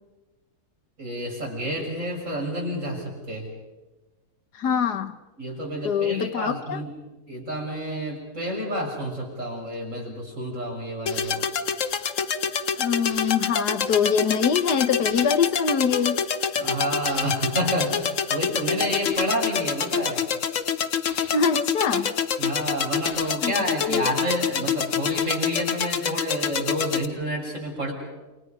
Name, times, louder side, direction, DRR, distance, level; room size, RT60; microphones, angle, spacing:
voice 1, 1.0-3.5 5.4-6.9 7.3-11.5 16.5-20.3 22.4-27.9, equal, 50° right, 7.2 m, -29 dB
voice 2, 4.6-5.2 5.8-6.8 12.8-16.2 21.3-22.1 23.4-23.5 23.9-24.1, left 6 dB, 90° left, 1.8 m, -24 dB
sound 1, 11.1-27.1, left 7 dB, 55° left, 1.3 m, -27 dB
29.0 x 28.5 x 5.4 m
omnidirectional pair, 1.7 m